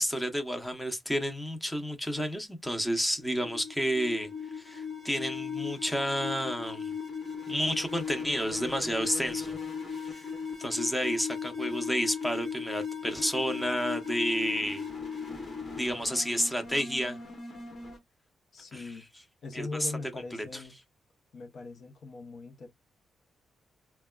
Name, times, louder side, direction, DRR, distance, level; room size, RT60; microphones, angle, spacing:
voice 1, 0.0-4.3 4.5-6.9 7.5-9.6 10.0-10.3 10.6-14.9 15.7-17.2 18.7-18.8 19.5-19.9 20.3-20.6, equal, 5° left, 0.7 m, -31 dB
sound 1, 3.2-18.0, left 6 dB, 45° left, 1.2 m, -37 dB
voice 2, 18.5-19.1 19.4-20.7 21.3-22.7, left 3 dB, 65° left, 0.8 m, -41 dB
3.4 x 2.2 x 2.2 m
cardioid pair, 90°, 0 cm